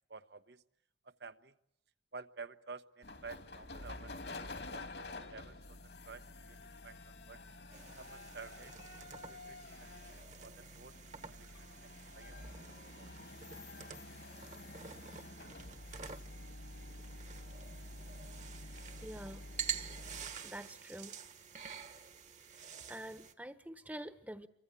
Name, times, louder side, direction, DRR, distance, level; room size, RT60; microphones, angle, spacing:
voice 1, 0.1-0.6 1.0-1.5 2.1-5.8 6.0-6.6 6.8-7.0 7.3-7.4 8.0-8.8 9.3-10.9 11.2-13.1, right 4 dB, 65° right, 11 dB, 1.0 m, -52 dB
sound 1, 3.0-20.4, left 2 dB, 70° left, 2.5 m, -49 dB
sound 2, 7.7-23.3, right 8 dB, 40° right, 1.4 m, -48 dB
voice 2, 19.0-19.4 20.4-21.2 22.9-24.5, right 1 dB, 10° right, 11 dB, 1.1 m, -46 dB
28.0 x 24.5 x 8.4 m, 0.79 s
head